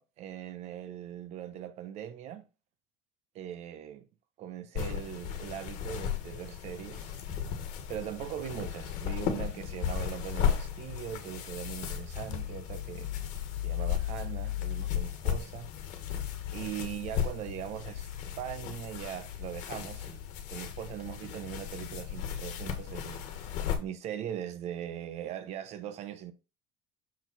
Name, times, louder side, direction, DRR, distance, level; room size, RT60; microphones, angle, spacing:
voice 1, 0.0-2.5 3.3-4.1 4.4-7.2 7.9-13.1 13.6-15.7 15.9-16.0 16.5-20.2 20.5-26.3, right 10 dB, 55° right, 0.9 m, -40 dB
sound 1, 4.7-23.8, left 9 dB, 65° left, 1.3 m, -35 dB
6.4 x 4.4 x 4.0 m
cardioid pair, 135°, 14 cm